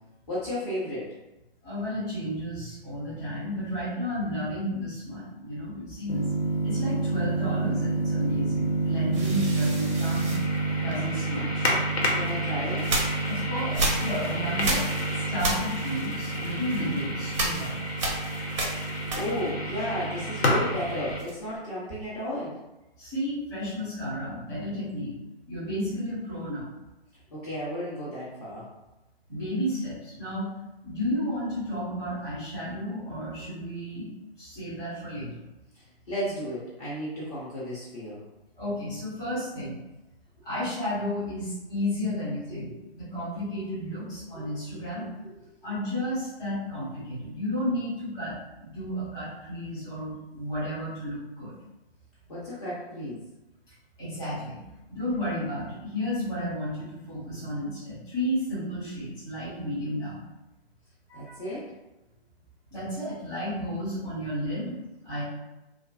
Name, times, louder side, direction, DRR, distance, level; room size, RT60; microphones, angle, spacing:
voice 1, 0.3-1.1 12.1-12.9 19.1-22.6 27.3-28.6 35.7-38.2 42.5-42.6 44.3-44.8 45.2-45.3 52.3-53.2 61.1-61.7, equal, 35° left, -10 dB, 0.9 m, -34 dB
voice 2, 1.6-6.2 6.6-11.7 13.3-14.9 15.3-17.7 23.0-25.1 25.5-26.7 29.3-30.5 30.8-34.1 34.4-35.4 38.6-39.8 40.4-45.1 45.6-51.6 54.0-54.6 54.9-60.2 61.1-61.4 62.7-64.8 65.0-65.2, equal, 10° left, -12 dB, 1.1 m, -32 dB
sound 1, 6.1-21.2, right 1 dB, 80° left, 0.8 m, -28 dB
sound 2, 9.1-11.3 12.0-19.7 19.9-21.6, right 1 dB, 30° right, 0.4 m, -33 dB
2.4 x 2.4 x 2.4 m, 0.98 s
figure-of-eight pair, 135°, 31 cm